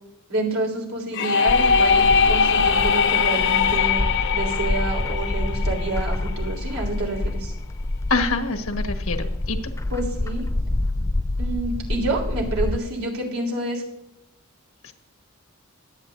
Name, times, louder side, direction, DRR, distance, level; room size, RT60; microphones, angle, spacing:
voice 1, 0.3-4.0 4.3-7.5 9.9-10.4 11.4-13.8, right 2 dB, 70° right, 1 dB, 3.6 m, -28 dB
sound 1, 1.1-6.8, left 6 dB, 55° left, 0.8 m, -21 dB
Bird, 1.5-12.8, left 2 dB, 15° left, 0.3 m, -27 dB
voice 2, 8.1-9.6 14.8-14.9, left 3 dB, 75° left, 5 dB, 1.4 m, -25 dB
23.0 x 8.9 x 2.6 m, 0.84 s
head